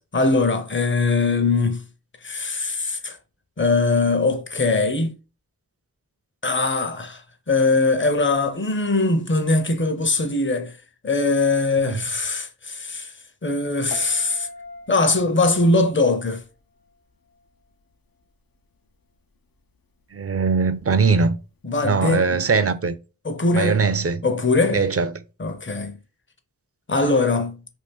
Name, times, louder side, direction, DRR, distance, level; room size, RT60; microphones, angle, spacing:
voice 1, 0.1-1.8 2.2-3.2 3.6-5.1 6.4-10.8 11.0-13.1 13.4-14.5 14.9-16.4 21.6-22.5 23.2-23.9 24.2-24.9 25.4-26.0 26.9-27.6, left 3 dB, 35° left, 0.7 m, -21 dB
Piano, 13.9-17.0 17.3-17.7, left 3 dB, 75° left, 0.6 m, -41 dB
voice 2, 20.1-21.4 21.8-23.0 23.5-24.2 24.7-25.1, right 4 dB, 40° right, 0.5 m, -21 dB
2.7 x 2.5 x 3.5 m
cardioid pair, 40°, 35 cm